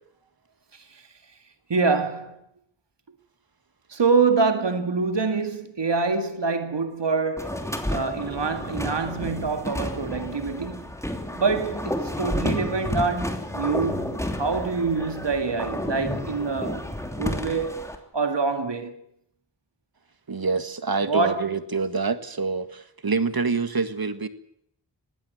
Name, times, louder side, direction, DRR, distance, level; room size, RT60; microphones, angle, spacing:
voice 1, 1.7-2.4 3.9-7.6 7.9-10.9 11.3-16.9 17.2-18.9 21.0-21.4, right 4 dB, 75° right, 2.1 m, -25 dB
sound 1, 7.4-18.0, left 1 dB, 5° left, 3.1 m, -31 dB
voice 2, 20.3-24.3, right 4 dB, 55° right, 1.8 m, -26 dB
20.5 x 16.0 x 9.3 m
wide cardioid pair, 70°, 43 cm